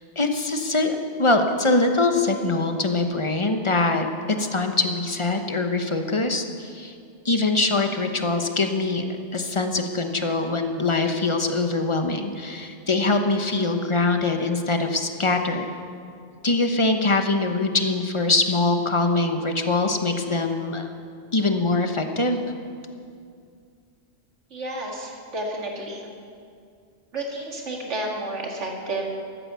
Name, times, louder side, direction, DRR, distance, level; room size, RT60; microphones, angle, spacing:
voice 1, 0.2-6.9 7.2-9.0 9.3-15.6 16.4-20.9 21.3-22.4, left 3 dB, 25° left, 5 dB, 1.0 m, -23 dB
voice 2, 24.5-26.1 27.1-29.1, right 2 dB, 80° right, -1 dB, 2.5 m, -31 dB
14.0 x 13.5 x 7.0 m, 2.3 s
omnidirectional pair, 1.2 m